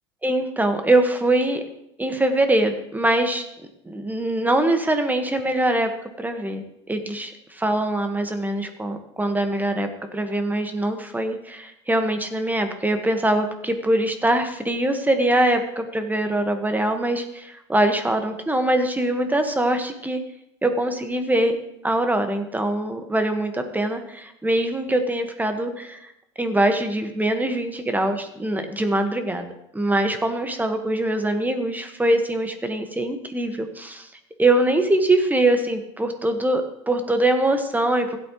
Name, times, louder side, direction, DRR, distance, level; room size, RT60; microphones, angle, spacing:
voice 1, 0.2-1.6 2.0-3.5 3.8-5.9 6.2-20.2 20.6-21.6 21.8-26.1 26.4-29.5 29.7-34.1 34.4-38.2, right 1 dB, 10° right, 6 dB, 1.5 m, -23 dB
15.5 x 8.6 x 3.1 m, 0.81 s
hypercardioid pair, 75°, 15 cm